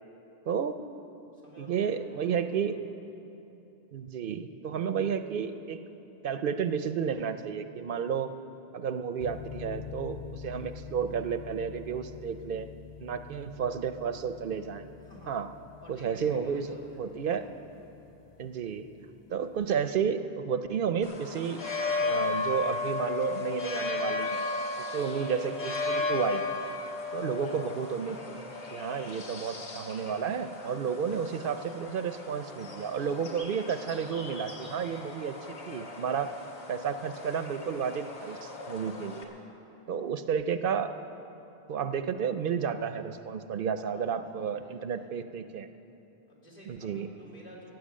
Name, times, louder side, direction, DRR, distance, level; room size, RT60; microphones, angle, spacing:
voice 1, 0.5-0.8 1.6-2.8 3.9-5.8 6.2-8.3 8.7-12.7 13.0-14.9 15.3-15.5 15.9-16.7 17.0-17.4 18.4-18.9 19.3-21.7 22.0-24.5 24.8-26.6 27.1-28.4 28.7-35.4 35.7-36.3 36.7-39.3 39.9-40.9 41.7-45.7 46.7-47.1, right 7 dB, 65° right, 10 dB, 0.7 m, -32 dB
voice 2, 1.3-2.8 15.0-15.4 15.8-17.4 43.9-45.1 46.3-47.7, equal, 60° left, -5 dB, 3.0 m, -51 dB
sound 1, 9.2-20.0, left 8 dB, 40° left, 0.4 m, -47 dB
sound 2, 21.0-39.2, left 3 dB, 80° left, 1.5 m, -35 dB
15.0 x 9.3 x 7.4 m, 2.9 s
omnidirectional pair, 1.0 m